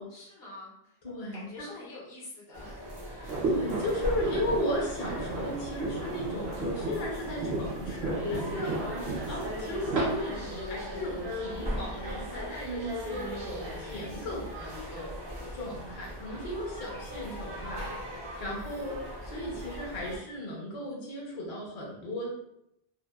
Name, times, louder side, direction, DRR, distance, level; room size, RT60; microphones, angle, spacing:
voice 1, 0.0-1.0 1.3-2.8, left 2 dB, 70° left, -6 dB, 1.1 m, -46 dB
voice 2, 1.0-1.7 3.1-9.0 9.3-15.2 15.5-22.3, left 1 dB, 45° left, -4 dB, 0.6 m, -36 dB
sound 1, 2.5-20.2, equal, 40° right, 0.3 m, -38 dB
sound 2, 3.2-10.1, right 2 dB, 65° right, 0.8 m, -34 dB
2.7 x 2.1 x 2.2 m, 0.79 s
omnidirectional pair, 1.1 m